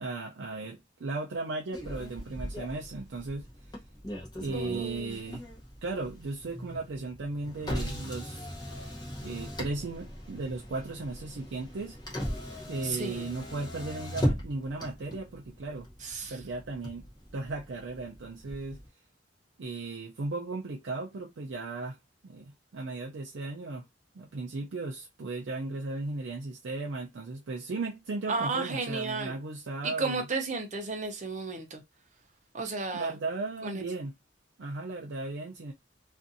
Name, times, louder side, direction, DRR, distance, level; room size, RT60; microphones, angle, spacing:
voice 1, 0.0-3.5 4.4-5.4 5.8-8.5 9.2-12.0 12.7-15.9 16.3-18.8 19.6-22.0 22.2-23.8 24.1-30.3 32.9-34.1 34.6-35.7, right 3 dB, 75° right, 0.5 m, -36 dB
Motor vehicle (road), 1.7-18.9, equal, 20° left, 0.8 m, -38 dB
voice 2, 4.5-5.2 12.8-13.3 16.0-16.4 28.3-29.3 29.8-31.8 32.5-33.1 33.6-33.8, right 3 dB, 40° right, 0.7 m, -33 dB
2.5 x 2.5 x 2.5 m
head